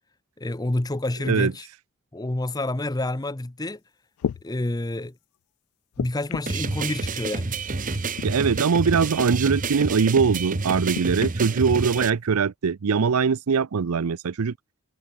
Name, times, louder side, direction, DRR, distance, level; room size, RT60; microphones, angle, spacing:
voice 1, 0.4-1.7 2.1-3.8 4.4-5.1 6.0-7.5, left 1 dB, 20° left, 0.7 m, -28 dB
sound 1, 3.7-3.8 4.2-4.4 5.9-6.6 7.9-8.3 8.9-9.1 10.9-11.4 12.3-12.4, left 8 dB, 85° left, 0.3 m, -32 dB
sound 2, 6.5-12.1, right 3 dB, 35° right, 0.9 m, -28 dB
voice 2, 8.2-14.5, right 5 dB, 90° right, 0.5 m, -22 dB
head